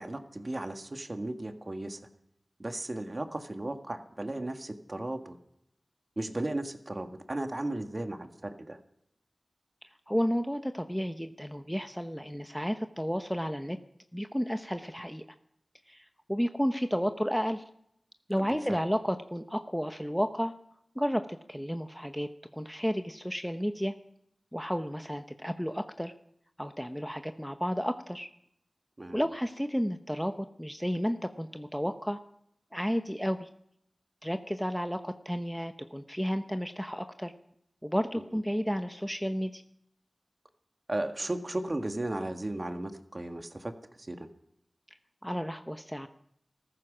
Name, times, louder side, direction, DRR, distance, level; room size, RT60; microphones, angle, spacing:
voice 1, 0.0-2.0 2.6-5.4 6.2-8.8 18.4-18.8 29.0-29.2 40.9-43.7 44.0-44.3, right 1 dB, 45° right, 6 dB, 1.8 m, -35 dB
voice 2, 10.1-13.8 14.1-15.2 15.9-17.6 18.3-20.5 20.9-23.9 24.5-26.1 26.6-28.3 29.1-32.2 32.7-33.5 34.2-37.3 37.8-39.6 45.2-46.1, equal, ahead, 8 dB, 0.9 m, -32 dB
15.0 x 14.0 x 6.3 m, 0.74 s
cardioid pair, 40°, 0 cm